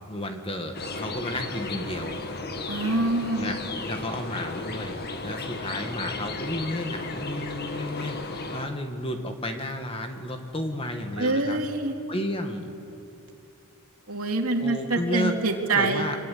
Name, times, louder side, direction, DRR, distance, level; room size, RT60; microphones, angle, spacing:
voice 1, 0.1-2.2 3.4-3.5 3.8-5.0 5.2-11.6 12.1-12.7 14.6-16.2, left 1 dB, 25° left, 5 dB, 2.1 m, -32 dB
sound 1, 0.7-8.7, left 3 dB, 45° left, 1.7 m, -34 dB
voice 2, 2.7-3.5 11.2-11.9 14.1-16.1, right 3 dB, 80° right, 3 dB, 2.7 m, -25 dB
25.5 x 24.0 x 9.6 m, 2.8 s
head